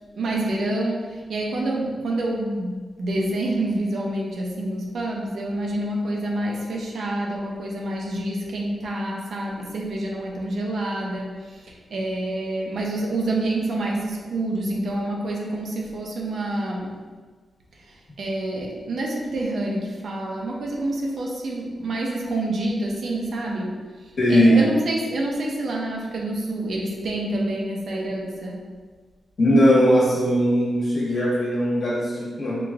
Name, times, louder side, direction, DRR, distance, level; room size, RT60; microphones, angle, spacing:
voice 1, 0.1-17.0 17.8-28.7, right 1 dB, 60° right, -1 dB, 0.7 m, -27 dB
voice 2, 24.2-24.6 29.4-32.6, equal, 45° left, -6 dB, 1.3 m, -19 dB
4.9 x 2.5 x 3.6 m, 1.5 s
wide cardioid pair, 175°, 0 cm